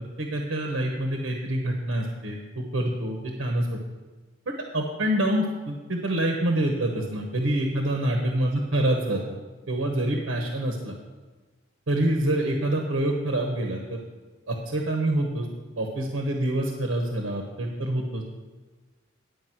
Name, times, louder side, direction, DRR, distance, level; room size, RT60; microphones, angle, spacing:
voice 1, 0.2-3.8 4.5-9.2 9.7-10.9 11.9-14.0 14.5-15.5 15.8-18.2, right 1 dB, 90° right, 2 dB, 1.0 m, -26 dB
9.7 x 5.1 x 7.6 m, 1.3 s
head